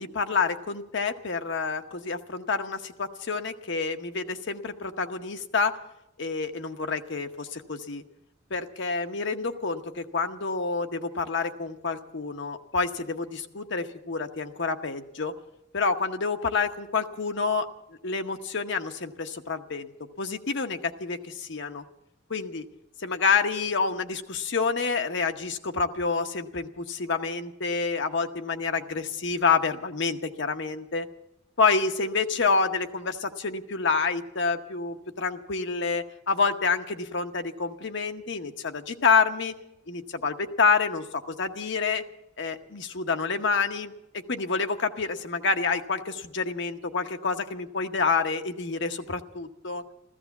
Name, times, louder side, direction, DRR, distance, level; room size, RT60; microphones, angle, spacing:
voice 1, 0.0-5.7 6.2-8.0 8.5-15.3 15.7-17.7 18.0-19.9 20.2-21.8 22.3-22.7 23.0-31.1 31.6-39.5 39.9-42.0 42.4-49.8, left 4 dB, 65° left, 7 dB, 0.9 m, -28 dB
14.5 x 14.0 x 7.0 m, 0.87 s
head